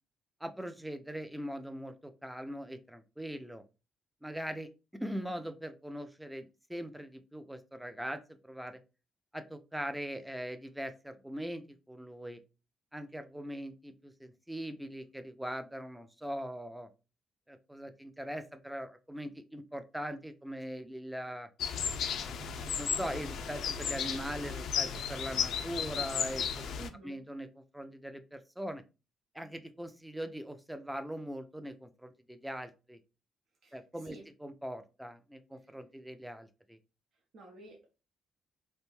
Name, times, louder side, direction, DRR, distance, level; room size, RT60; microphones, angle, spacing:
voice 1, 0.4-3.6 4.2-4.7 5.0-8.8 9.3-12.4 12.9-16.9 17.5-21.5 22.2-22.5 22.8-26.7 27.0-28.8 29.3-33.0 33.7-36.8, equal, 5° right, 10 dB, 0.4 m, -41 dB
sound 1, 21.6-26.9, left 7 dB, 75° left, 0.3 m, -34 dB
voice 2, 26.8-27.2 33.6-33.8 34.0-34.2 37.3-37.9, right 2 dB, 65° right, -1 dB, 0.7 m, -50 dB
2.5 x 2.1 x 3.0 m, 0.30 s
cardioid pair, 90°, 0 cm